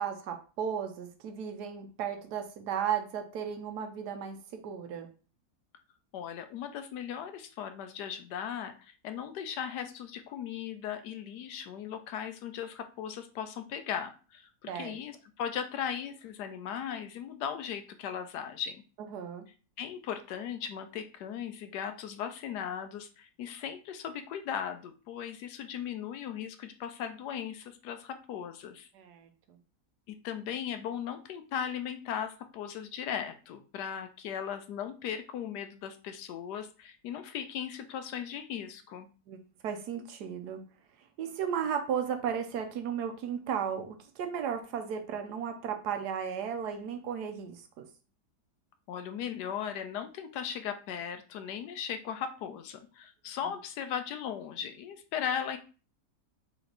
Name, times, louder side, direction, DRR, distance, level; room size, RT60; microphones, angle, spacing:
voice 1, 0.0-5.1 14.7-14.9 19.1-19.5 28.9-29.6 39.3-40.6 41.2-47.8 53.4-53.5, right 8 dB, 70° right, 7 dB, 1.2 m, -35 dB
voice 2, 6.1-18.8 19.8-28.9 30.1-39.1 48.9-55.6, left 8 dB, 75° left, 9 dB, 1.1 m, -37 dB
4.3 x 3.0 x 3.9 m, 0.36 s
omnidirectional pair, 1.9 m